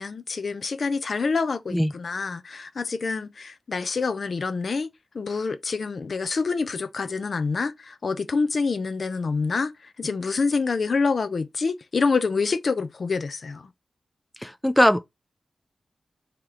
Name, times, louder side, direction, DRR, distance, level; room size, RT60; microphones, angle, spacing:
voice 1, 0.0-4.9 5.1-13.7, left 4 dB, 55° left, 0.5 m, -27 dB
voice 2, 14.4-15.0, equal, 5° left, 0.3 m, -20 dB
3.7 x 2.9 x 4.8 m
wide cardioid pair, 145°, 0 cm